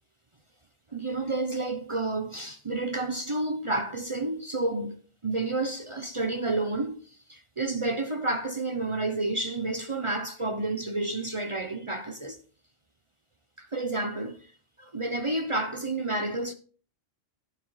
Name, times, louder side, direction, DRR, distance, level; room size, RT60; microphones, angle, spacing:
voice 1, 0.9-5.0 5.2-12.4 13.6-14.5 14.8-16.5, right 2 dB, 30° right, 0.6 m, -30 dB
12.0 x 9.4 x 3.2 m
omnidirectional pair, 1.3 m